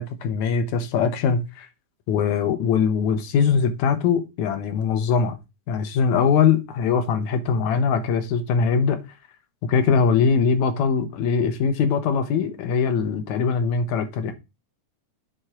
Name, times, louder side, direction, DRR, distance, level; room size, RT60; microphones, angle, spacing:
voice 1, 0.0-1.7 2.1-5.4 5.7-9.0 9.6-14.3, left 6 dB, 75° left, 2.0 m, -22 dB
7.9 x 3.7 x 4.3 m
omnidirectional pair, 3.6 m